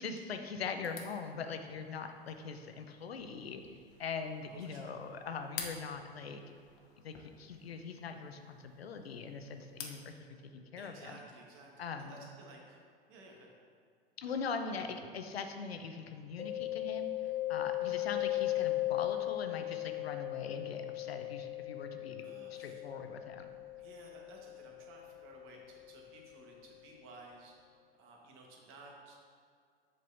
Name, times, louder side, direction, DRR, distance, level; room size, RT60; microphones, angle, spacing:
voice 1, 0.0-3.6 4.0-6.4 7.0-10.2 10.5-11.2 11.8-12.2 14.2-22.3 22.5-23.5, left 5 dB, 85° left, 7 dB, 0.6 m, -42 dB
sound 1, 0.8-10.1, left 7 dB, 45° left, 0.9 m, -51 dB
voice 2, 4.5-5.0 10.8-12.8 13.1-13.5 22.2-22.8 23.8-27.5 28.0-29.2, right 2 dB, 45° right, -1 dB, 1.4 m, -55 dB
Mallet percussion, 16.4-26.0, left 16 dB, 20° left, 0.6 m, -37 dB
7.7 x 5.4 x 2.6 m, 2.2 s
hypercardioid pair, 95°, 30 cm